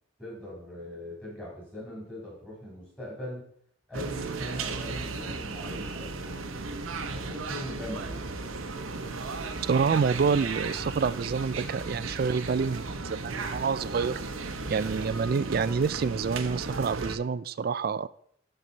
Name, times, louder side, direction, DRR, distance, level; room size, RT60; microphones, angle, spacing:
voice 1, 0.2-3.4 3.9-6.4 7.1-8.2, left 1 dB, 5° left, -5 dB, 3.8 m, -40 dB
sound 1, 3.9-17.2, right 3 dB, 80° right, 0.9 m, -35 dB
voice 2, 9.7-14.2 14.7-18.1, right 5 dB, 45° right, 17 dB, 0.3 m, -27 dB
12.0 x 4.7 x 4.0 m, 0.66 s
head